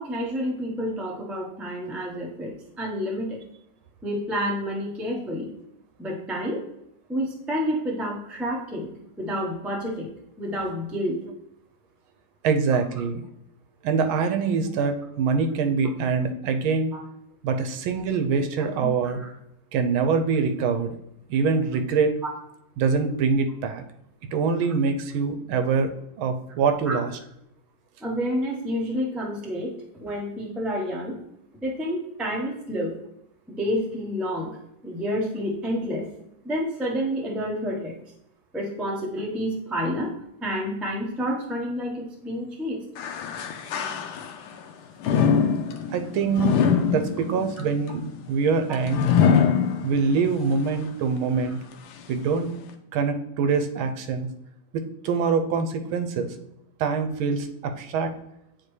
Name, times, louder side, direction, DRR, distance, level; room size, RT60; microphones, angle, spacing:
voice 1, 0.0-3.4 4.0-5.5 6.0-6.6 7.1-8.9 9.2-11.2 18.8-19.3 22.2-22.3 26.9-27.0 28.0-31.2 31.6-32.9 33.5-34.5 34.8-36.1 36.4-37.9 38.5-40.1 40.4-42.8 50.4-50.5, equal, ahead, -2 dB, 0.3 m, -29 dB
voice 2, 12.4-13.2 13.8-16.9 17.4-19.2 19.7-20.9 21.3-22.1 22.8-23.8 24.3-27.1 45.9-48.0 48.3-49.0 49.8-51.6 52.1-52.5 52.9-54.3 54.7-56.3 56.8-58.1, right 5 dB, 75° right, 7 dB, 1.4 m, -24 dB
sound 1, 43.0-44.5 45.0-50.3 50.8-50.9 51.7-51.8, left 7 dB, 85° left, 1.6 m, -23 dB
8.8 x 4.2 x 3.2 m, 0.79 s
omnidirectional pair, 2.4 m